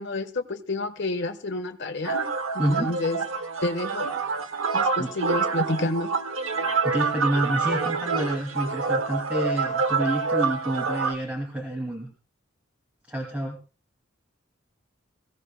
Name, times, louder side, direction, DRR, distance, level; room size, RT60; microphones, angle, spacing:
voice 1, 0.0-2.3 2.5-3.2 3.6-4.1 4.7-6.1, left 2 dB, 55° left, 7 dB, 1.2 m, -29 dB
sound 1, 2.0-11.1, right 4 dB, 70° right, 1.1 m, -27 dB
voice 2, 2.6-2.9 5.0-5.1 6.8-12.1 13.1-13.6, right 1 dB, 5° right, 0 dB, 2.4 m, -28 dB
21.5 x 15.5 x 2.2 m, 0.33 s
head